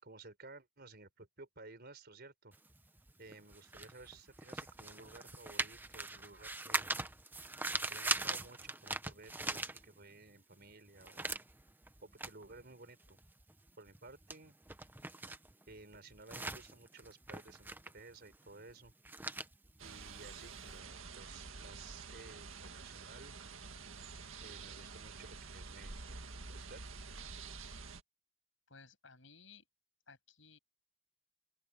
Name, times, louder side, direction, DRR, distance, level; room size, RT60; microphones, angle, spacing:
voice 1, 0.0-2.5 3.2-7.0 7.9-11.3 12.0-13.2 13.8-14.5 15.7-18.9 19.8-23.3 24.4-26.2 26.5-26.8, right 3 dB, 50° right, 4.3 m, -55 dB
sound 1, 2.5-10.3 10.6-20.7, right 2 dB, 10° right, 0.9 m, -42 dB
sound 2, 19.8-28.0, right 4 dB, 75° right, 1.9 m, -48 dB
voice 2, 28.7-29.6 30.1-30.6, left 4 dB, 70° left, 7.7 m, -58 dB
open air
head